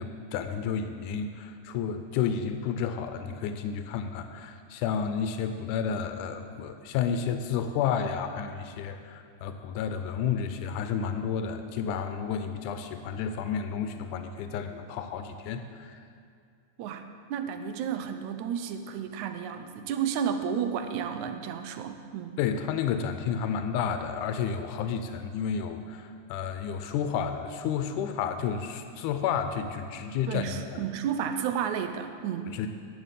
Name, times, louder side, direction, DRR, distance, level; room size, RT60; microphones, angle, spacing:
voice 1, 0.0-16.0 22.4-30.5 30.7-30.8 32.5-32.7, left 7 dB, 90° left, 8 dB, 2.1 m, -31 dB
voice 2, 16.8-22.4 30.3-32.5, right 8 dB, 80° right, 8 dB, 2.0 m, -32 dB
11.0 x 6.4 x 8.2 m, 2.3 s
omnidirectional pair, 3.5 m